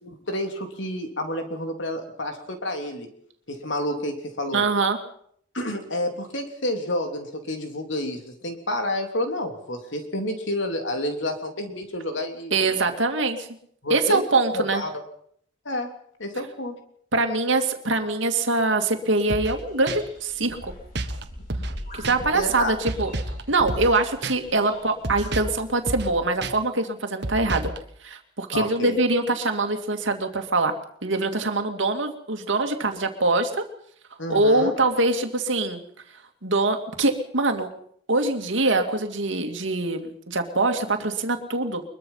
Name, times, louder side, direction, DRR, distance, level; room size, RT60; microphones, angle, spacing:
voice 1, 0.0-3.1 3.5-4.6 5.5-12.6 13.8-14.2 14.5-15.0 15.6-15.9 16.2-16.8 22.3-22.7 25.4-25.5 28.5-29.0 34.2-34.8, left 1 dB, 70° left, 5 dB, 3.4 m, -29 dB
voice 2, 4.5-5.0 12.5-13.5 13.9-14.8 17.1-20.7 21.9-23.1 23.5-27.7 28.0-30.7 31.0-33.6 34.3-35.8 36.4-37.7 38.1-41.8, right 2 dB, 75° right, 5 dB, 2.5 m, -23 dB
sound 1, 19.3-25.9, left 1 dB, 45° left, 5.2 m, -43 dB
sound 2, 19.3-19.6 19.9-20.0 21.0-21.2 21.5-21.8 22.0-22.2 22.9-23.4 23.7-24.0 24.2-24.3 25.0-25.6 25.9-26.1 26.4-26.5 27.2-27.8, right 2 dB, 60° right, 1.6 m, -30 dB
23.0 x 22.0 x 5.7 m, 0.66 s
head